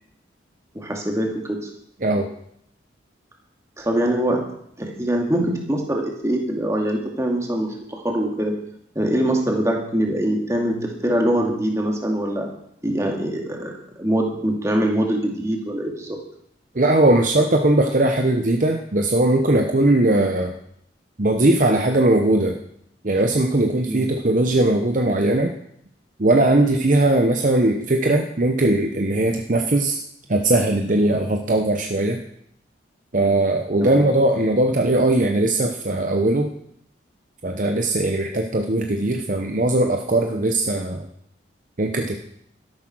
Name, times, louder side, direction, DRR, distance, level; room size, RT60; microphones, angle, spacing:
voice 1, 0.7-1.7 3.8-4.5 4.8-8.6 9.0-12.5 12.8-16.2 23.9-24.0 33.8-34.0, right 1 dB, 15° right, 1 dB, 2.3 m, -23 dB
voice 2, 16.7-20.5 21.2-22.6 23.0-25.5 26.2-30.0 30.3-32.2 33.1-36.5 37.4-41.1 41.8-42.2, right 1 dB, 45° right, 4 dB, 0.9 m, -19 dB
12.5 x 11.0 x 6.1 m, 0.71 s
head